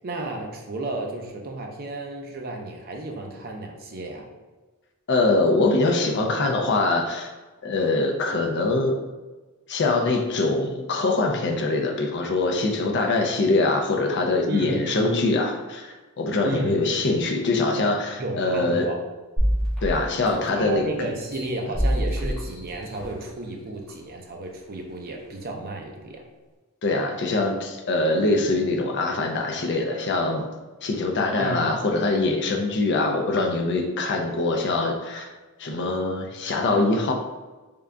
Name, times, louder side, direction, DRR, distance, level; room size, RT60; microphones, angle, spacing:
voice 1, 0.0-4.2 14.5-14.9 16.4-16.8 18.2-19.0 20.5-26.2 31.4-31.7, right 2 dB, 45° right, 2 dB, 0.6 m, -33 dB
voice 2, 5.1-7.3 7.6-9.0 9.7-18.9 19.8-21.1 26.8-30.5 30.8-35.3 35.6-37.1, left 2 dB, 55° left, 3 dB, 0.5 m, -23 dB
sound 1, 19.4-20.7 21.2-23.3 23.9-24.0, equal, ahead, 1.4 m, -26 dB
3.7 x 3.6 x 2.2 m, 1.2 s
head